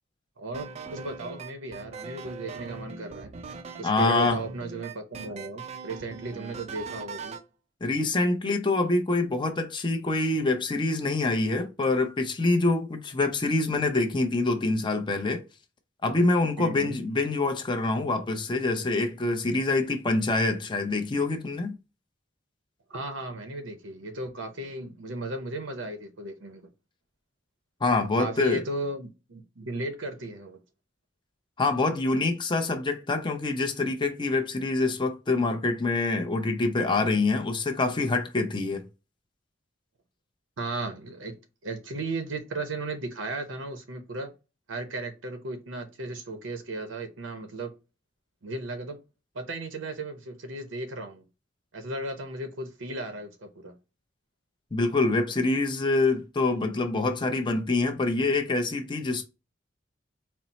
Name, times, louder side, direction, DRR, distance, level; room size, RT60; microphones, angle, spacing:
voice 1, 0.4-3.3 3.8-7.4 16.6-17.0 22.9-26.7 28.2-30.6 40.6-41.3 41.6-44.3 44.7-47.7 48.4-49.0 49.3-51.2 51.7-53.7, right 2 dB, 80° right, 0.7 m, -35 dB
sound 1, 0.5-7.5, right 4 dB, 35° right, 0.4 m, -40 dB
voice 2, 3.8-4.4 7.8-15.4 16.0-21.8 27.8-28.6 31.6-38.9 54.7-59.3, left 3 dB, 25° left, 0.6 m, -25 dB
4.3 x 2.0 x 4.0 m
head